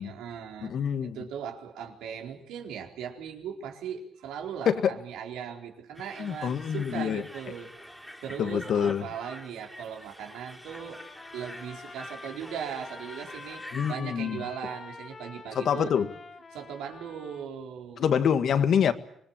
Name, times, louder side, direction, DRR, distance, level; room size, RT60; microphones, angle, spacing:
voice 1, 0.0-0.7 1.0-7.9 8.2-11.0 11.3-15.9 16.5-18.1, right 8 dB, 90° right, 4.4 m, -39 dB
voice 2, 0.6-1.2 4.7-5.0 6.2-7.2 8.4-9.1 13.7-14.4 15.6-16.1 18.0-18.9, left 8 dB, 65° left, 1.9 m, -26 dB
sound 1, 5.9-14.0, equal, 5° left, 3.3 m, -47 dB
Trumpet, 10.7-17.5, left 4 dB, 35° left, 2.6 m, -46 dB
25.5 x 22.0 x 8.8 m
cardioid pair, 90°, 0 cm